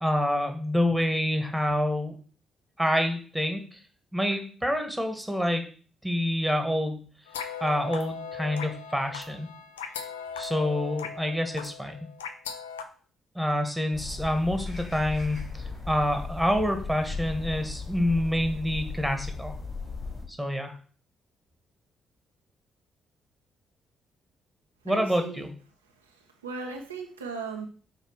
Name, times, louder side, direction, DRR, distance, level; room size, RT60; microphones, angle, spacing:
voice 1, 0.0-2.2 2.8-3.8 4.1-5.6 6.0-7.0 7.6-9.5 10.4-11.9 13.3-19.5 20.3-20.7 24.8-25.5, equal, 5° right, 6 dB, 1.6 m, -27 dB
sound 1, 7.3-12.8, left 7 dB, 75° left, 0.5 m, -38 dB
sound 2, 13.9-20.2, left 4 dB, 50° left, 3.6 m, -37 dB
voice 2, 24.9-25.5 26.0-27.7, right 4 dB, 80° right, 2 dB, 0.7 m, -38 dB
6.0 x 4.7 x 4.7 m, 0.42 s
figure-of-eight pair, 40°, 0 cm